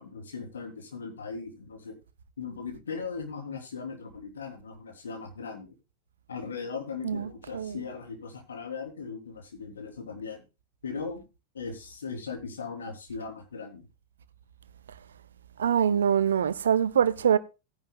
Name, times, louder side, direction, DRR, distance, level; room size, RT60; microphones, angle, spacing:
voice 1, 0.0-2.0 2.4-5.7 6.3-10.4 10.8-11.2 11.5-13.9, left 5 dB, 70° left, 3.6 m, -38 dB
voice 2, 7.0-7.8 15.6-17.4, right 8 dB, 65° right, 0.8 m, -24 dB
17.5 x 10.5 x 2.4 m
figure-of-eight pair, 90°, 0 cm